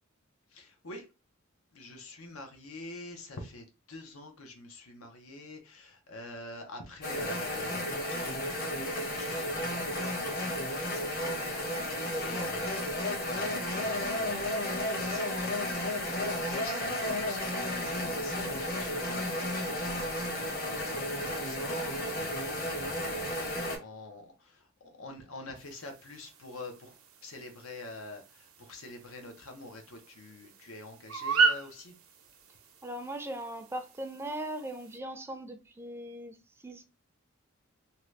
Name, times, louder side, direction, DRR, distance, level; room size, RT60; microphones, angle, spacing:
voice 1, 0.5-1.1 1.7-11.4 11.9-31.9, left 2 dB, 85° left, 0.9 m, -46 dB
sound 1, 7.0-23.8, left 1 dB, 45° left, 1.0 m, -33 dB
voice 2, 12.1-12.5 32.8-36.4 36.6-36.8, right 1 dB, 10° right, 0.4 m, -39 dB
sound 2, 25.6-35.0, right 5 dB, 75° right, 0.6 m, -36 dB
2.8 x 2.4 x 3.2 m
head